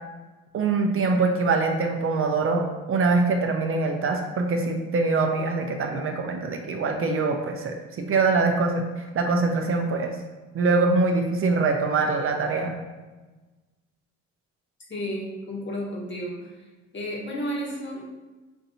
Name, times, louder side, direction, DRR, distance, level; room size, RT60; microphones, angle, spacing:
voice 1, 0.5-10.1 10.5-12.8, right 3 dB, 45° right, 3 dB, 0.5 m, -24 dB
voice 2, 14.9-16.7 16.9-18.1, equal, 40° left, -3 dB, 1.3 m, -32 dB
5.3 x 2.6 x 2.7 m, 1.2 s
cardioid pair, 90°, 30 cm